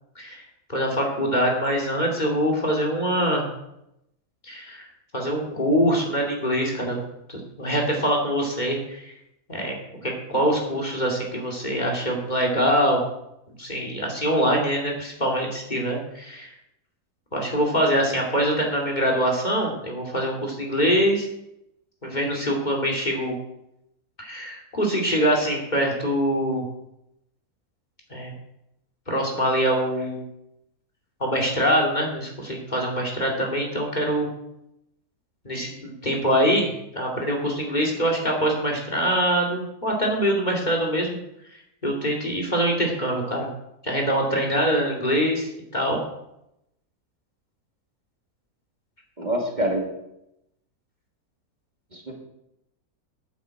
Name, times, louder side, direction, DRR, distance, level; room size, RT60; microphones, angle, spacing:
voice 1, 0.7-3.5 4.4-4.8 5.1-7.0 7.3-9.1 9.5-13.0 13.6-16.5 17.3-21.3 22.0-23.3 24.2-26.6 28.1-28.3 29.1-30.2 31.2-34.3 35.4-41.2 41.8-43.5 43.8-46.0, equal, 30° left, -1 dB, 2.5 m, -24 dB
voice 2, 49.2-49.9 51.9-52.1, right 1 dB, 30° right, 0 dB, 2.0 m, -25 dB
9.5 x 7.8 x 7.6 m, 0.84 s
omnidirectional pair, 1.6 m